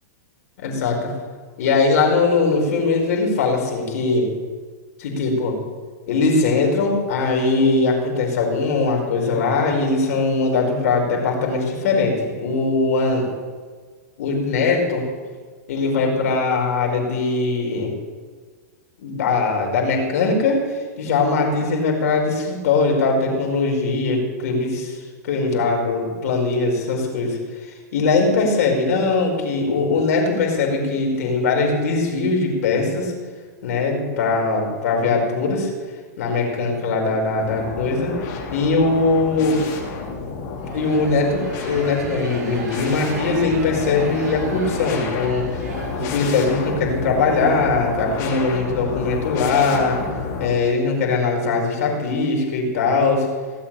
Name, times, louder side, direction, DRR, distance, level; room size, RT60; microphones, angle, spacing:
voice 1, 0.6-1.1 1.6-4.3 5.0-5.6 6.1-13.3 14.2-15.1 15.7-17.9 19.0-33.1 33.6-35.7 36.2-38.2 38.5-39.6 40.7-50.0 50.4-53.3, left 3 dB, 60° left, 1 dB, 4.9 m, -21 dB
sound 1, 37.4-50.5, left 4 dB, 35° left, 3.3 m, -30 dB
sound 2, 40.6-46.5, right 3 dB, 85° right, 4.5 m, -37 dB
17.5 x 8.6 x 8.9 m, 1.5 s
supercardioid pair, 160°, 9 cm